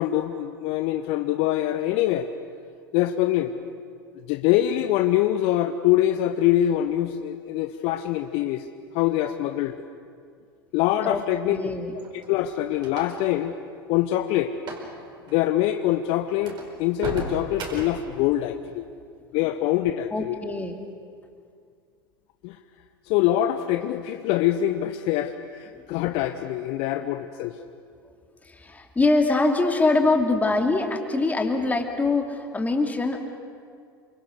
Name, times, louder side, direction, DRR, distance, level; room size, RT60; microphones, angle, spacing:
voice 1, 0.0-2.3 2.9-3.6 4.3-8.7 8.9-9.7 10.7-11.6 12.3-13.5 13.9-14.5 15.3-18.9 19.3-20.4 22.4-22.6 23.1-27.5, left 13 dB, 50° left, 8 dB, 0.9 m, -24 dB
voice 2, 11.0-12.0 20.1-20.8 25.7-25.8 26.9-27.0 28.4-33.2, left 3 dB, 15° left, 3 dB, 2.8 m, -24 dB
sound 1, 12.0-13.4 14.6-14.9 15.2-15.4 15.9-16.0 16.4-18.1, right 3 dB, 40° right, 5.0 m, -35 dB
28.0 x 25.5 x 6.4 m, 2.2 s
figure-of-eight pair, 75°, 12 cm